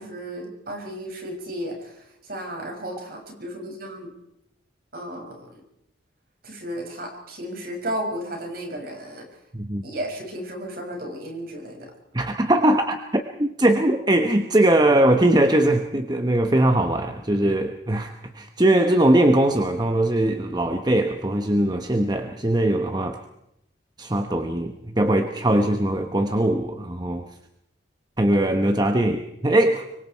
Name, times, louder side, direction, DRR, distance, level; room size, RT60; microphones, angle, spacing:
voice 1, 0.0-4.1 4.9-5.6 6.4-9.3 9.8-11.9, right 1 dB, 50° right, 2 dB, 6.7 m, -34 dB
voice 2, 12.1-23.2 24.0-27.2 28.2-29.9, right 1 dB, 20° right, 6 dB, 1.1 m, -21 dB
25.5 x 24.0 x 4.7 m, 0.82 s
head